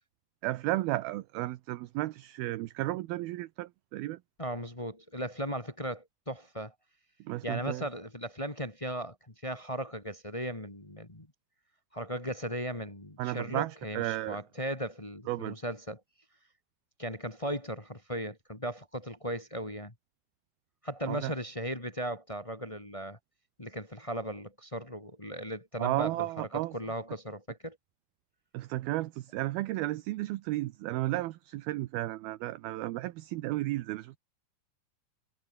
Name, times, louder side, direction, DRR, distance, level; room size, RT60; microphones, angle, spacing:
voice 1, 0.4-4.2 7.2-7.9 13.2-14.4 15.3-15.6 21.1-21.3 25.8-26.7 28.5-34.2, right 17 dB, 75° right, 2.5 m, -33 dB
voice 2, 4.4-6.7 7.4-11.3 11.9-16.0 17.0-19.9 20.8-23.2 23.6-26.3 26.5-27.8, equal, 15° left, 1.2 m, -37 dB
omnidirectional pair, 4.8 m